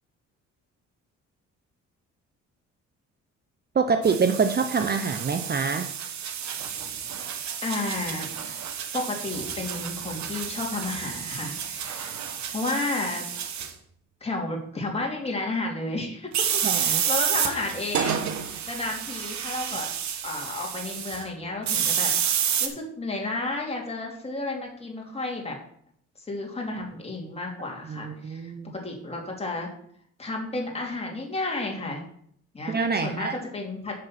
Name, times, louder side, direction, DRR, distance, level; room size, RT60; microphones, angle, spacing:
voice 1, 3.7-5.9 16.6-17.0 18.6-18.7 27.8-28.7 32.7-33.3, right 5 dB, 35° right, 7 dB, 0.7 m, -25 dB
sound 1, 4.0-13.7 16.3-21.2 21.7-22.7, right 8 dB, 65° right, 1.2 m, -30 dB
voice 2, 7.6-8.6 8.9-12.2 12.5-13.3 14.2-19.9 20.2-22.1 22.4-25.6 26.3-29.7 30.2-32.0 32.5-32.8 33.0-33.9, left 2 dB, 20° left, -1 dB, 2.8 m, -32 dB
6.8 x 6.6 x 5.8 m, 0.65 s
cardioid pair, 90°, 30 cm